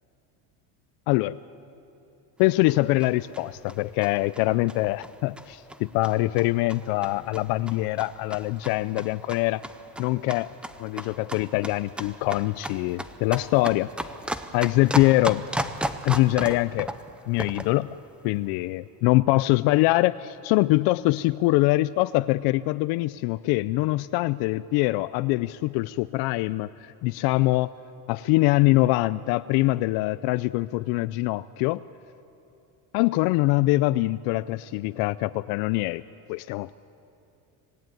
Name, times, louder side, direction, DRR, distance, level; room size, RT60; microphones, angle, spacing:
voice 1, 2.4-9.6 10.0-10.5 10.8-13.9 14.5-15.5 16.0-16.9 17.3-17.9 18.2-27.7 28.1-31.8 32.9-36.0 36.3-36.7, left 19 dB, 65° left, 15 dB, 0.5 m, -23 dB
sound 1, 2.4-17.8, right 1 dB, 5° right, 0.5 m, -36 dB
26.5 x 17.0 x 9.1 m, 2.9 s
cardioid pair, 165°, 40 cm